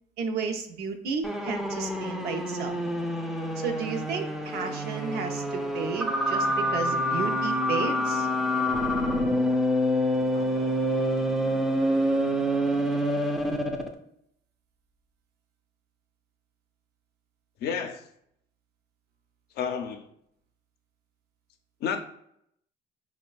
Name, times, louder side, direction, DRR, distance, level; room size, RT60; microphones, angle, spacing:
voice 1, 0.2-2.8 3.6-8.3, right 5 dB, 70° right, 4 dB, 0.5 m, -33 dB
sound 1, 1.2-13.9, equal, ahead, 0.4 m, -27 dB
voice 2, 10.3-10.7 17.6-18.0 19.6-20.1 21.8-22.0, left 7 dB, 70° left, 6 dB, 0.4 m, -31 dB
4.4 x 2.1 x 2.3 m, 0.72 s
cardioid pair, 110°, 17 cm